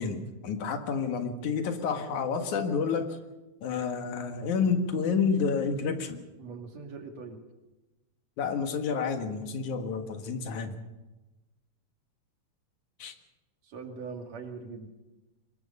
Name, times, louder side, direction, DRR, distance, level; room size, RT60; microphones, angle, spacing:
voice 1, 0.0-3.2 3.6-6.3 8.4-10.8 13.0-13.1, left 5 dB, 90° left, 6 dB, 3.1 m, -29 dB
voice 2, 6.4-7.4 13.6-14.9, right 4 dB, 65° right, 4 dB, 3.4 m, -41 dB
23.5 x 20.5 x 5.5 m, 1.1 s
omnidirectional pair, 3.3 m